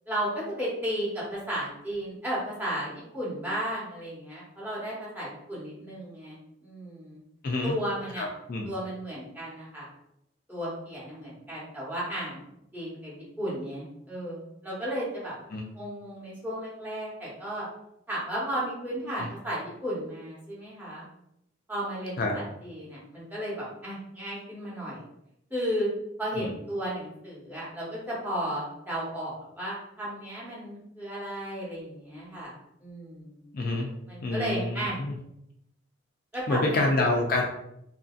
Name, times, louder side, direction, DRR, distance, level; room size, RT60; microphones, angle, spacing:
voice 1, 0.1-7.2 7.6-8.3 8.6-9.9 10.5-12.5 12.7-15.4 15.7-17.7 18.1-21.1 21.7-25.0 25.5-25.9 26.2-32.5 32.8-33.4 34.1-35.0 36.3-37.1, equal, 10° right, -8 dB, 1.0 m, -34 dB
voice 2, 7.4-7.8 8.2-8.7 15.5-15.6 19.2-19.3 22.2-22.3 26.4-26.5 33.5-33.9 34.2-35.1 36.5-37.4, left 2 dB, 50° left, 1 dB, 0.3 m, -27 dB
2.8 x 2.6 x 2.4 m, 0.80 s
head